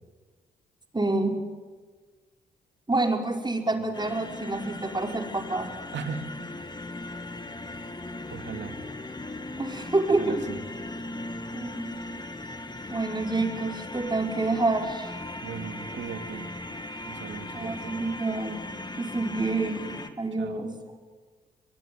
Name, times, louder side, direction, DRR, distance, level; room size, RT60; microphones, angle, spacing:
voice 1, 0.9-1.4 2.9-5.7 9.6-10.4 11.5-12.0 12.9-15.1 17.5-18.6 19.0-20.7, right 2 dB, 20° right, 4 dB, 5.1 m, -28 dB
sound 1, 3.9-20.1, left 2 dB, 20° left, 2.7 m, -38 dB
voice 2, 5.9-6.5 8.3-8.8 10.2-10.6 15.4-16.5 17.0-18.0 20.4-20.7, right 6 dB, 60° right, 8 dB, 2.7 m, -38 dB
22.5 x 22.5 x 9.4 m, 1.4 s
hypercardioid pair, 40°, 21 cm